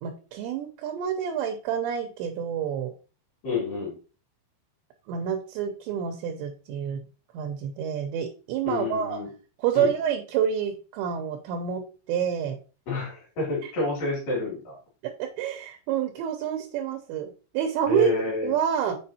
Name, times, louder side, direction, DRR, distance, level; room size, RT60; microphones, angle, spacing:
voice 1, 0.0-2.9 5.1-7.0 7.3-9.2 9.6-12.6 13.6-13.7 15.2-19.0, right 8 dB, 80° right, 5 dB, 2.7 m, -28 dB
voice 2, 3.4-3.9 8.6-9.3 9.7-9.9 12.9-14.8 17.9-18.6, left 3 dB, 50° left, -3 dB, 4.0 m, -29 dB
7.6 x 4.9 x 2.8 m, 0.35 s
omnidirectional pair, 5.7 m